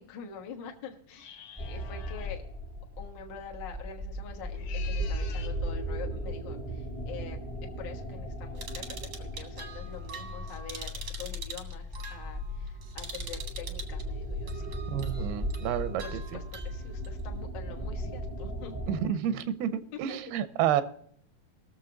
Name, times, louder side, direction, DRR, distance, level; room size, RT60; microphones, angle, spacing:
voice 1, 0.0-2.4 3.0-7.4 7.8-14.8 16.0-18.7, left 6 dB, 90° left, 1 dB, 0.9 m, -45 dB
sound 1, 1.1-2.4 4.4-5.6, left 9 dB, 65° left, 2.2 m, -48 dB
sound 2, 1.6-19.0, equal, 35° left, 0.4 m, -37 dB
sound 3, 8.6-14.0 14.5-17.1, right 5 dB, 75° right, 1.1 m, -44 dB
voice 2, 14.9-16.0 18.9-20.8, right 10 dB, 90° right, 12 dB, 2.8 m, -29 dB
20.0 x 6.9 x 3.9 m, 0.64 s
omnidirectional pair, 4.4 m